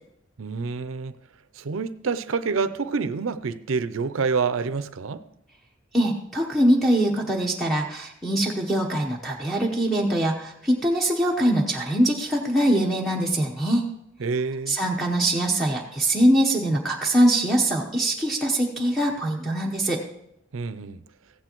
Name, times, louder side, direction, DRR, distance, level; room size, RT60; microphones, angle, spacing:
voice 1, 0.4-1.2 1.6-5.2 14.2-14.8 20.5-21.0, right 4 dB, 90° right, 0.5 m, -27 dB
voice 2, 5.9-13.8 14.7-20.0, right 1 dB, ahead, 0.9 m, -23 dB
15.0 x 9.6 x 3.0 m
head